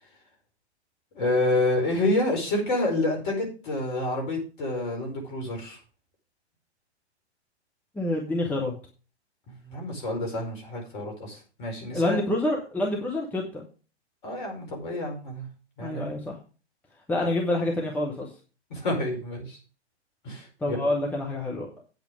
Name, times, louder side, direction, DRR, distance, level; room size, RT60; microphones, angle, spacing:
voice 1, 1.1-5.8 9.6-12.2 14.2-15.5 15.8-16.1 18.7-19.6 20.2-20.8, left 2 dB, 45° left, 2 dB, 5.0 m, -28 dB
voice 2, 7.9-8.7 11.9-13.6 15.8-16.4 17.1-18.3 20.6-21.7, left 1 dB, 5° left, -1 dB, 1.2 m, -27 dB
8.8 x 8.0 x 4.9 m, 0.36 s
figure-of-eight pair, 120°, 35 cm